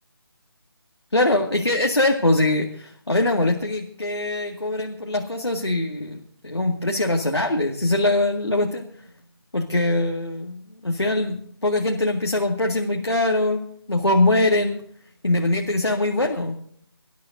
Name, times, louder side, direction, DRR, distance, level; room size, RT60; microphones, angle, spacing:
voice 1, 1.1-8.8 9.5-13.6 13.9-14.8 15.2-16.5, left 2 dB, 90° left, 2 dB, 2.1 m, -22 dB
25.0 x 12.5 x 2.7 m, 0.63 s
figure-of-eight pair, 155°, 13 cm